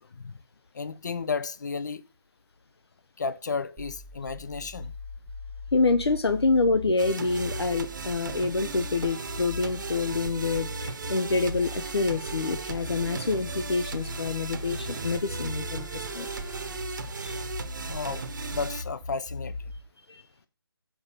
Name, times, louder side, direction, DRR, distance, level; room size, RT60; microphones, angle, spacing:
voice 1, 0.7-2.0 3.2-4.9 17.9-18.2 18.5-19.7, left 5 dB, 45° left, 0.6 m, -33 dB
sound 1, 3.8-19.8, left 2 dB, 5° right, 1.0 m, -39 dB
voice 2, 5.7-16.3 17.2-17.4 20.1-20.2, left 3 dB, 85° left, 0.8 m, -27 dB
sound 2, 7.0-18.8, right 5 dB, 50° right, 0.9 m, -37 dB
Bowed string instrument, 12.6-17.0, left 5 dB, 15° left, 0.9 m, -49 dB
6.7 x 5.7 x 5.8 m
hypercardioid pair, 170°, 13 cm